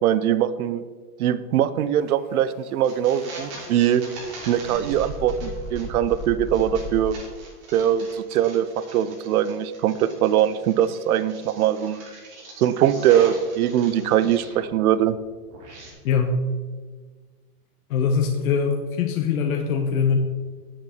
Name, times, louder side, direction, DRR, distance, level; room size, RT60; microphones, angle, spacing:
voice 1, 0.0-0.8 1.2-4.0 4.5-7.2 7.7-12.0 12.6-15.2, right 10 dB, 70° right, 14 dB, 0.7 m, -22 dB
sound 1, 2.0-7.0, left 2 dB, 15° left, 0.3 m, -37 dB
sound 2, 2.8-14.7 15.0-15.9, right 2 dB, 35° right, 3.1 m, -42 dB
voice 2, 16.0-16.4 17.9-20.2, left 6 dB, 60° left, 4 dB, 1.0 m, -22 dB
8.5 x 7.6 x 4.3 m, 1.4 s
supercardioid pair, 160°, 46 cm